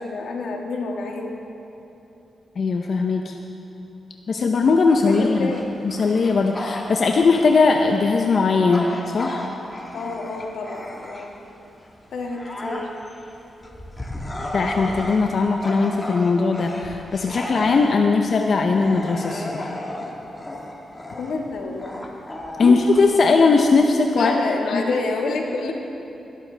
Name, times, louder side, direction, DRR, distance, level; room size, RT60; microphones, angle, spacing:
voice 1, 0.0-1.4 5.1-5.6 9.9-11.3 12.1-12.9 13.6-13.7 21.2-22.0 22.6-22.7 24.1-25.7, left 3 dB, 85° left, 1 dB, 1.5 m, -28 dB
voice 2, 2.6-3.4 4.3-5.5 5.8-9.5 14.5-19.8 22.6-24.4 24.7-24.8, left 4 dB, 55° left, 3 dB, 0.7 m, -19 dB
Bark / Growling, 4.9-11.5 12.0-23.9, left 1 dB, 20° left, 1.6 m, -34 dB
21.5 x 12.0 x 3.4 m, 3.0 s
cardioid pair, 100°, 0 cm